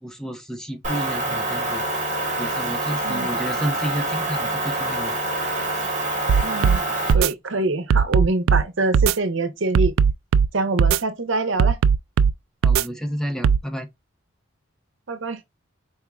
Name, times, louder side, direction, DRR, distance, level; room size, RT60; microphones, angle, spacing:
voice 1, 0.0-1.8 2.4-5.1 12.6-13.9, equal, ahead, 0.5 m, -30 dB
Motor vehicle (road) / Engine, 0.8-7.1, right 1 dB, 40° right, 1.2 m, -26 dB
sound 1, 6.3-6.8 7.1-7.3 7.9-8.6 8.9-9.2 9.8-10.5 10.8-11.0 11.6-12.3 12.6-12.8 13.4-13.6, right 6 dB, 90° right, 0.3 m, -17 dB
voice 2, 6.4-6.8 7.1-9.9 10.5-11.8 15.1-15.4, right 2 dB, 65° right, 0.8 m, -24 dB
4.6 x 3.5 x 2.3 m
head